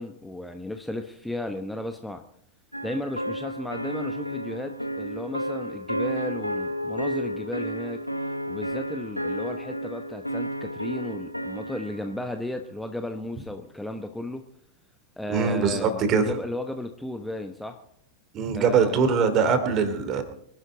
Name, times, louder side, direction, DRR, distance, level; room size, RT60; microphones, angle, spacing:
voice 1, 0.0-2.2 2.8-8.0 8.5-14.4 15.2-17.8 18.5-19.0, left 1 dB, 5° left, 6 dB, 1.0 m, -34 dB
sound 1, 2.7-12.2, equal, 90° left, 0.8 m, -32 dB
voice 2, 15.3-16.3 18.3-20.2, right 5 dB, 35° right, 9 dB, 2.8 m, -22 dB
24.5 x 11.5 x 3.9 m, 0.69 s
figure-of-eight pair, 90°, 0 cm